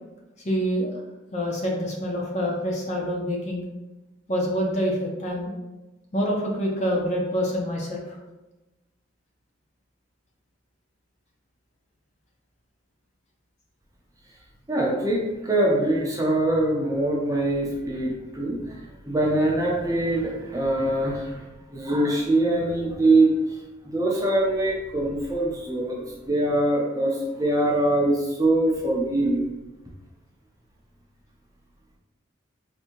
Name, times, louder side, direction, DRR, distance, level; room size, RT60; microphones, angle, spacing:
voice 1, 0.4-0.9 1.3-3.7 4.3-5.5 6.1-8.2, equal, 35° left, -2 dB, 0.6 m, -26 dB
voice 2, 14.7-21.5 21.7-23.3 23.8-29.5, right 1 dB, 15° right, -3 dB, 0.5 m, -23 dB
3.4 x 2.7 x 2.9 m, 1.1 s
head